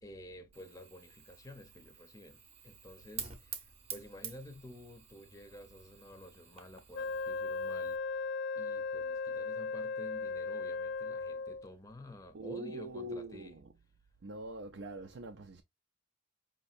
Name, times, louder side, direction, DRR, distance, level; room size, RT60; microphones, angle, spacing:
voice 1, 0.0-8.3 8.5-13.5, left 1 dB, 15° left, 0.6 m, -51 dB
Fire, 0.5-8.0, right 7 dB, 30° right, 0.8 m, -49 dB
Wind instrument woodwind instrument, 6.9-11.7, left 4 dB, 60° left, 0.3 m, -37 dB
voice 2, 12.3-13.7 14.2-15.6, right 1 dB, 65° right, 0.5 m, -43 dB
5.2 x 2.9 x 2.5 m
head